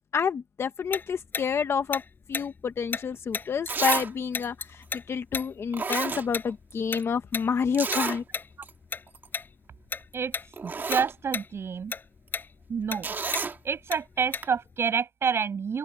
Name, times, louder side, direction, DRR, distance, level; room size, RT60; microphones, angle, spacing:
voice 1, 0.1-2.0 2.3-8.2, left 6 dB, 65° left, 0.8 m, -29 dB
Tick-tock, 0.9-4.1 4.3-9.0 9.3-9.5 9.9-10.5 10.8-14.7, left 5 dB, 45° left, 5.5 m, -34 dB
Zipper (clothing), 3.1-3.2 3.7-4.1 4.4-4.5 5.4-5.5 5.7-6.7 7.0-7.1 7.7-8.2 8.6-8.7 9.1-9.3 10.1-10.2 10.5-11.1 13.0-13.6 14.4-14.5, right 4 dB, 45° right, 2.5 m, -30 dB
voice 2, 10.6-11.9 12.7-13.1 13.6-15.8, right 6 dB, 65° right, 7.1 m, -28 dB
open air
wide cardioid pair, 170°, 5 cm